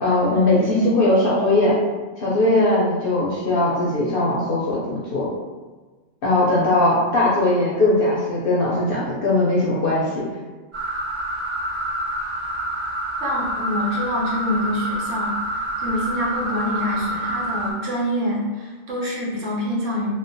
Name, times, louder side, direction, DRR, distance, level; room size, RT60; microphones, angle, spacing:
voice 1, 0.0-1.7 2.2-5.3 6.2-10.2, left 2 dB, 60° left, -6 dB, 0.6 m, -19 dB
sound 1, 10.7-17.7, right 1 dB, 40° right, 0.5 m, -27 dB
voice 2, 13.2-15.4 15.8-20.1, left 1 dB, 85° right, -6 dB, 1.2 m, -25 dB
2.9 x 2.1 x 2.6 m, 1.3 s
omnidirectional pair, 1.3 m